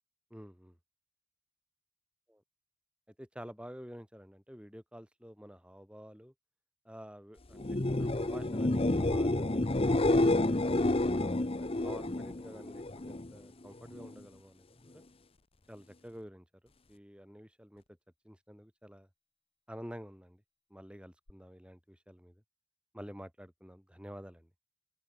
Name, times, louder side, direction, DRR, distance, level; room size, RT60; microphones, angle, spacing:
voice 1, 0.3-0.8 2.3-2.4 3.2-6.3 6.8-10.6 11.1-15.1 15.7-16.5 16.9-17.8 18.2-19.1 19.7-20.4 20.7-22.4 22.9-24.5, equal, 5° right, 7.3 m, -49 dB
sound 1, 7.5-13.3 13.7-14.2 21.3-21.4, left 2 dB, 25° left, 0.8 m, -29 dB
open air
head